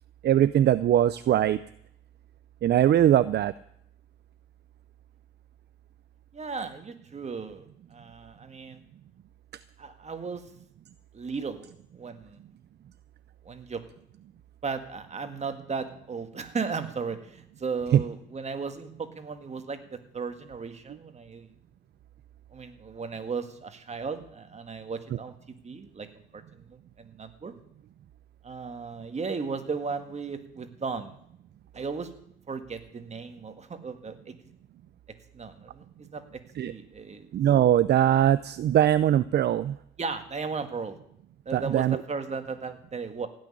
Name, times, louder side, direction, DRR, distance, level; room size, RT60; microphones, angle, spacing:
voice 1, 0.2-1.6 2.6-3.5 17.9-18.0 36.6-36.7 37.3-39.8 41.5-42.0, right 11 dB, 55° right, 15 dB, 0.5 m, -21 dB
voice 2, 6.3-8.8 9.8-10.4 11.1-12.4 13.4-13.8 14.6-21.5 22.5-25.3 25.6-26.1 26.3-27.6 28.4-31.2 31.7-32.1 32.5-34.3 35.3-36.2 36.6-37.3 40.0-41.0 41.5-43.3, right 5 dB, 35° right, 8 dB, 1.8 m, -36 dB
16.5 x 6.5 x 9.9 m, 0.70 s
cardioid pair, 90°, 20 cm